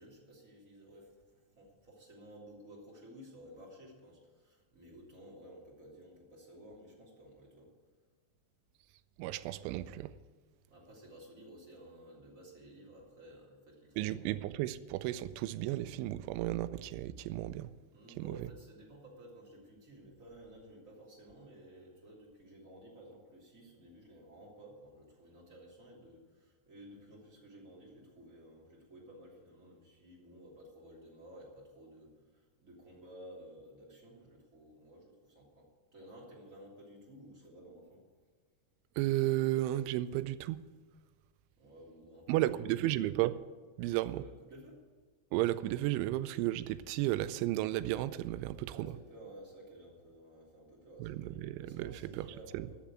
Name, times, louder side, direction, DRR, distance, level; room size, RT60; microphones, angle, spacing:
voice 1, 0.0-7.7 10.7-14.3 17.9-38.0 41.6-43.0 43.9-44.8 48.7-52.8, right 1 dB, 20° right, 2.5 m, -54 dB
voice 2, 9.2-10.1 14.0-17.7 18.2-18.4 39.0-40.6 42.3-43.3 43.8-44.2 45.3-48.9 51.0-51.9 52.2-52.3 52.5-52.7, right 15 dB, 90° right, 3.0 m, -33 dB
13.0 x 7.1 x 8.7 m
omnidirectional pair, 5.3 m